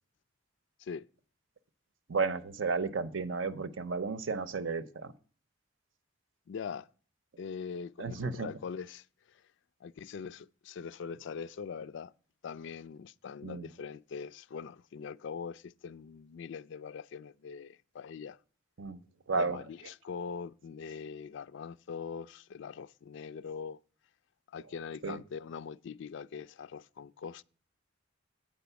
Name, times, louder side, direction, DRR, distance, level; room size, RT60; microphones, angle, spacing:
voice 1, 2.1-5.1 8.0-8.5 13.4-13.7 18.8-19.0 19.3-19.6 25.0-25.2, right 4 dB, 75° right, 0.7 m, -33 dB
voice 2, 6.5-6.9 7.4-9.4 9.8-12.1 12.4-18.4 19.3-23.8 24.5-27.4, left 6 dB, 65° left, 0.4 m, -42 dB
9.0 x 5.1 x 6.9 m
head